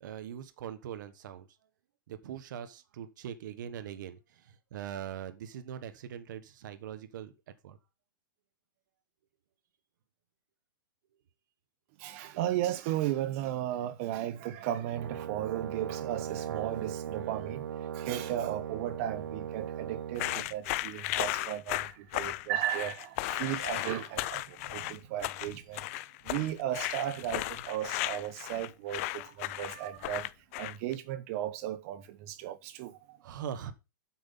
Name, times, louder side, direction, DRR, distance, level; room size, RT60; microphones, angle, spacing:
voice 1, 0.0-1.5 2.1-7.3 7.6-7.8 21.3-21.5 24.8-25.1 25.4-25.5 33.2-33.7, right 9 dB, 60° right, 1.3 m, -42 dB
voice 2, 12.0-25.8 26.2-30.3 30.6-33.2, right 12 dB, 40° right, 1.0 m, -35 dB
Brass instrument, 14.9-20.4, right 9 dB, 85° right, 0.7 m, -38 dB
sound 1, 20.1-30.9, left 18 dB, 40° left, 0.5 m, -35 dB
8.3 x 6.2 x 5.3 m
hypercardioid pair, 155°, 11 cm